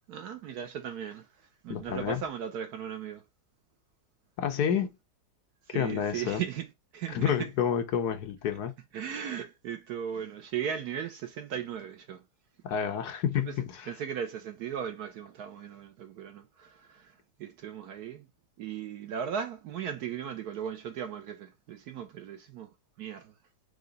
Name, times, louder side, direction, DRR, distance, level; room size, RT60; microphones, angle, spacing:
voice 1, 0.1-1.3 1.6-3.2 5.7-6.6 6.9-7.3 8.9-12.2 13.5-13.6 13.9-17.1 17.4-18.3 18.6-22.7 23.0-23.3, right 8 dB, 70° right, 1.1 m, -37 dB
voice 2, 1.7-2.2 4.4-4.9 5.7-6.4 7.1-8.7 12.6-13.9, left 8 dB, 70° left, 1.3 m, -29 dB
4.9 x 2.8 x 3.8 m
omnidirectional pair, 1.8 m